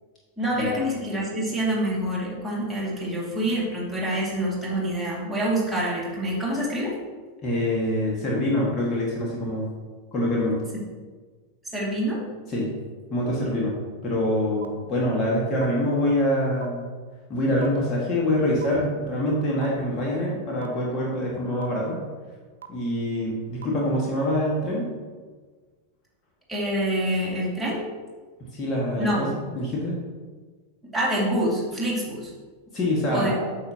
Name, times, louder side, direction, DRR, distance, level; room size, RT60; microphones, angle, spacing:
voice 1, 0.4-7.0 11.7-12.2 26.5-27.9 29.0-29.3 30.9-32.3 33.1-33.5, right 1 dB, 5° right, -6 dB, 2.4 m, -26 dB
voice 2, 7.4-9.7 10.1-10.6 12.5-12.7 13.1-13.8 14.0-16.8 17.3-22.0 22.7-24.9 28.4-30.0 32.7-33.4, left 1 dB, 25° left, -4 dB, 1.9 m, -25 dB
sound 1, 14.6-14.7 15.6-15.7 16.6-16.7 17.6-17.7 18.6-18.7 19.6-19.7 20.6-20.7 21.6-21.7 22.6-22.7 23.6-23.7, right 10 dB, 70° right, 0.5 m, -39 dB
8.8 x 7.3 x 3.0 m, 1.4 s
figure-of-eight pair, 90°, 0 cm